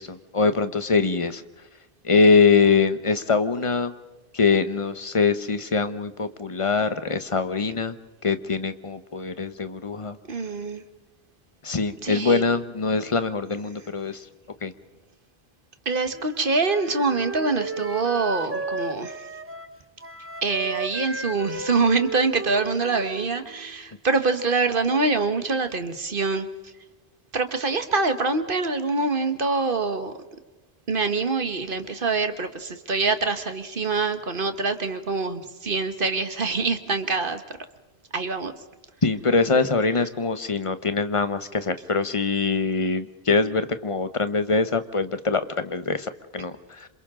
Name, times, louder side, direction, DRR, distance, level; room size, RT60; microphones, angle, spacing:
voice 1, 0.0-1.4 2.0-3.9 4.3-7.9 8.2-10.2 11.6-14.2 14.6-14.7 39.0-46.9, left 4 dB, 30° left, 11 dB, 1.0 m, -23 dB
voice 2, 10.3-10.8 12.0-12.4 15.8-19.2 20.4-26.5 27.3-30.1 30.9-37.4 38.1-38.5, right 3 dB, 60° right, 8 dB, 1.6 m, -25 dB
Wind instrument woodwind instrument, 16.1-23.9, right 3 dB, 15° right, 0.9 m, -34 dB
27.5 x 27.0 x 3.8 m, 1.1 s
omnidirectional pair, 1.0 m